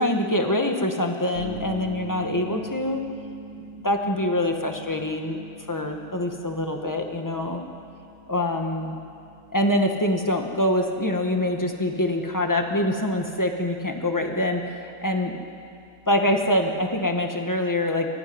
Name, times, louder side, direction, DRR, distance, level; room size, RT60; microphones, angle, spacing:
voice 1, 0.0-3.0 3.8-5.4 5.7-7.6 8.3-9.0 9.5-15.3 16.1-18.1, left 1 dB, 15° left, 3 dB, 1.7 m, -25 dB
sound 1, 1.3-17.3, right 1 dB, 55° left, 2.3 m, -44 dB
24.0 x 14.5 x 9.7 m, 2.5 s
omnidirectional pair, 1.4 m